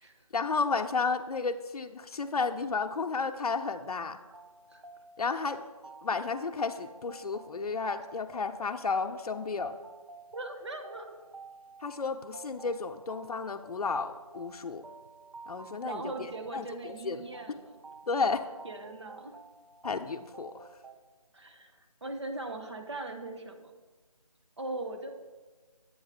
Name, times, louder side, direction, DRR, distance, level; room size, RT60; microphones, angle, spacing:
voice 1, 0.3-4.2 5.2-5.7 6.0-9.8 11.8-14.9 15.5-17.2 18.1-18.4 19.8-20.7, left 4 dB, 90° left, 5 dB, 0.5 m, -32 dB
sound 1, 4.3-20.9, right 3 dB, 85° right, 0.6 m, -51 dB
voice 2, 10.3-11.2 15.8-17.8 18.6-19.4 21.3-23.7 24.6-25.1, right 2 dB, 50° right, 4 dB, 0.7 m, -40 dB
8.0 x 3.3 x 4.9 m, 1.3 s
figure-of-eight pair, 175°, 19 cm